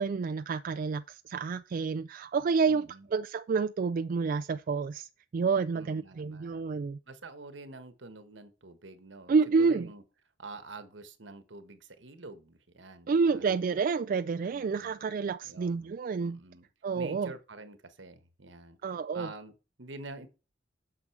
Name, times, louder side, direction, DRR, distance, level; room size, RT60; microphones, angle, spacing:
voice 1, 0.0-7.0 9.3-9.9 13.1-16.4 16.8-17.3 18.8-19.3, right 5 dB, 50° right, 0.3 m, -29 dB
voice 2, 2.6-3.1 5.7-6.7 7.1-10.0 10.4-13.6 14.5-14.9 15.4-15.9 16.2-16.7 16.9-18.8 19.1-20.3, right 2 dB, 80° right, 1.3 m, -47 dB
8.8 x 6.2 x 4.8 m
head